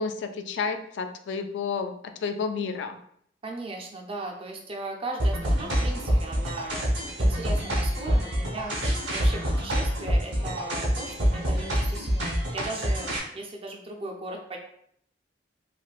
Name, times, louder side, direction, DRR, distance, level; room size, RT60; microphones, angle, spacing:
voice 1, 0.0-3.0, left 5 dB, 75° left, 7 dB, 0.3 m, -31 dB
voice 2, 3.4-6.9 7.2-13.1 13.3-14.6, right 2 dB, 30° right, 1 dB, 0.4 m, -37 dB
sound 1, 5.2-13.2, equal, 85° right, 0.8 m, -26 dB
3.3 x 2.5 x 2.3 m, 0.68 s
head